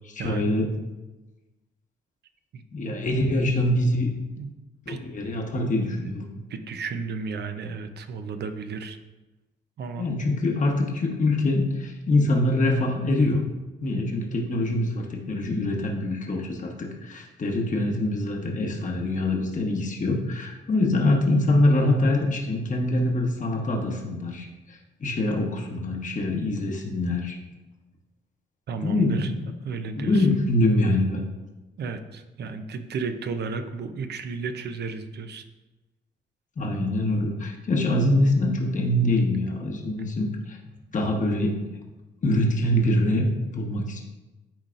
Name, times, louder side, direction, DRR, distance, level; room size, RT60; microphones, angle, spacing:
voice 1, 0.2-0.7 2.7-4.1 4.9-6.2 10.0-13.4 13.8-27.4 28.8-29.5 30.0-31.2 36.6-40.6 40.9-41.6 42.2-44.0, left 1 dB, 45° left, 1 dB, 1.1 m, -24 dB
voice 2, 5.5-9.0 9.8-10.1 28.7-29.3 29.6-30.4 31.8-35.4, right 4 dB, 65° right, 8 dB, 0.7 m, -34 dB
10.5 x 4.0 x 2.5 m, 1.1 s
cardioid pair, 75°, 19 cm